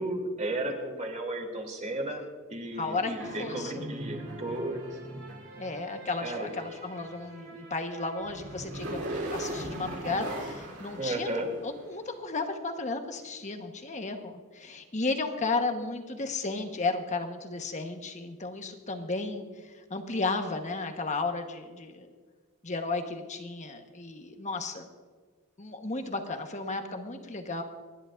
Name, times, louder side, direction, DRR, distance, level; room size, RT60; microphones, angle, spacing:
voice 1, 0.0-2.2 2.5-5.0 6.2-6.5 11.0-11.5, right 1 dB, 35° right, 1 dB, 3.0 m, -34 dB
voice 2, 2.8-3.1 3.4-3.8 5.6-11.3 11.6-22.1 22.6-24.9 25.6-27.6, left 3 dB, 35° left, 5 dB, 1.2 m, -34 dB
sound 1, 3.2-11.9, right 1 dB, 80° right, 3.6 m, -39 dB
27.5 x 11.0 x 2.6 m, 1.5 s
head